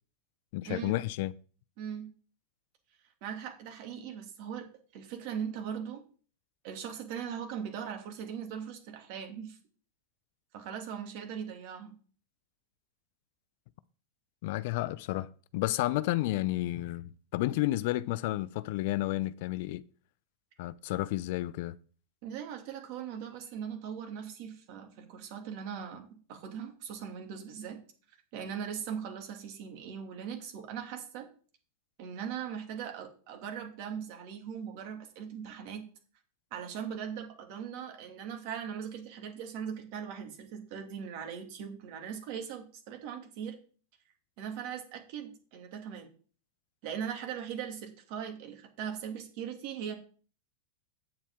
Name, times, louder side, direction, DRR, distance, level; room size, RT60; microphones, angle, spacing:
voice 1, 0.5-1.3 14.4-15.3 15.5-19.8 20.6-21.7, left 17 dB, 60° left, 0.4 m, -31 dB
voice 2, 1.8-2.1 3.2-4.7 4.9-6.0 6.6-9.6 10.5-12.0 22.2-27.8 28.3-31.3 32.0-35.9 36.5-43.6 44.4-46.1 46.8-49.9, right 8 dB, 55° right, 2.4 m, -40 dB
8.5 x 7.4 x 3.7 m
hypercardioid pair, 125°, 0 cm